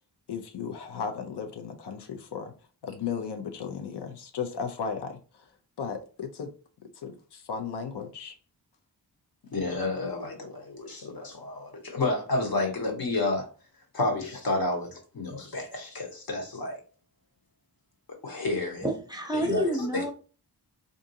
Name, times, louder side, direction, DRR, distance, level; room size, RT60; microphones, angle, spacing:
voice 1, 0.3-2.5 2.8-5.2 5.8-6.5 7.0-8.3, left 6 dB, 90° left, 0.6 m, -35 dB
voice 2, 9.5-13.5 13.9-16.8 18.2-18.9 19.3-20.0, left 2 dB, 60° left, 1.1 m, -30 dB
voice 3, 18.8-20.1, equal, 10° right, 0.6 m, -28 dB
3.6 x 2.6 x 2.7 m
wide cardioid pair, 90°, 39 cm